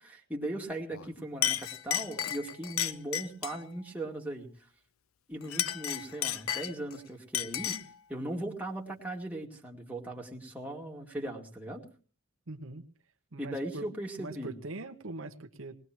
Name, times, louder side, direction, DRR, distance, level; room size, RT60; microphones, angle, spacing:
voice 1, 0.0-4.5 5.3-7.8 8.1-11.8 13.4-14.5, right 1 dB, 10° right, -1 dB, 2.3 m, -38 dB
Chink clink, 0.9-1.1 1.4-3.6 5.4-7.0 7.3-7.9, left 11 dB, 75° left, 0.7 m, -33 dB
voice 2, 12.5-12.8 13.3-13.9 14.2-15.7, right 2 dB, 70° right, 6 dB, 1.0 m, -42 dB
20.0 x 19.5 x 3.0 m, 0.38 s
head